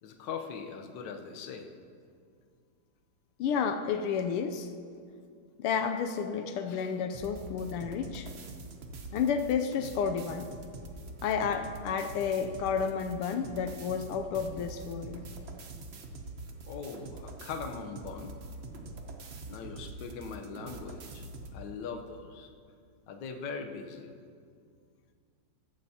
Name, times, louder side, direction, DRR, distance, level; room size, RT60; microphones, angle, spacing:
voice 1, 0.0-1.7 6.7-6.9 16.7-18.4 19.5-21.2 21.5-22.5 23.1-24.1, left 5 dB, 65° left, 4 dB, 1.4 m, -41 dB
voice 2, 3.4-4.7 5.6-8.3 9.1-10.5 11.2-15.2, left 6 dB, 85° left, 7 dB, 1.5 m, -31 dB
sound 1, 7.1-21.6, right 2 dB, 90° right, 0.5 m, -44 dB
14.5 x 14.5 x 2.8 m, 2.2 s
omnidirectional pair, 2.4 m